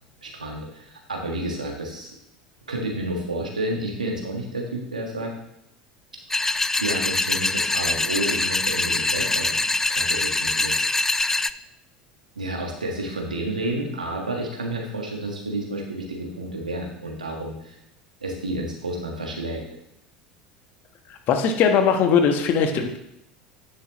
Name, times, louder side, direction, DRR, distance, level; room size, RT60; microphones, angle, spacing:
voice 1, 0.2-2.1 2.7-5.3 6.4-10.8 12.3-17.8 18.2-19.6, right 1 dB, 90° right, 1 dB, 1.5 m, -30 dB
sound 1, 6.3-11.5, left 2 dB, 10° left, 0.3 m, -24 dB
voice 2, 21.3-23.0, left 6 dB, 50° left, 5 dB, 1.3 m, -20 dB
9.9 x 6.8 x 3.1 m, 0.77 s
figure-of-eight pair, 75°, 4 cm